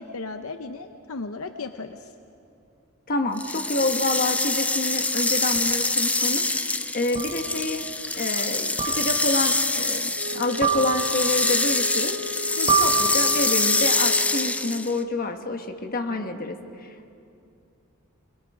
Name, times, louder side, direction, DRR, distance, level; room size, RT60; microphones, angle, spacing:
voice 1, 0.0-2.1 12.6-12.8, left 3 dB, 75° left, 8 dB, 0.7 m, -35 dB
voice 2, 3.1-6.4 6.9-7.8 8.2-12.1 12.8-17.1, left 2 dB, 40° left, 5 dB, 1.3 m, -28 dB
sound 1, 3.4-15.0, left 2 dB, 5° left, 0.4 m, -25 dB
sound 2, 5.6-5.7 7.2-7.5 8.8-9.4 10.6-11.4 12.7-13.6, right 6 dB, 25° right, 2.9 m, -26 dB
Wind instrument woodwind instrument, 10.1-14.7, right 1 dB, 75° right, 1.1 m, -36 dB
23.5 x 22.5 x 5.0 m, 2.7 s
head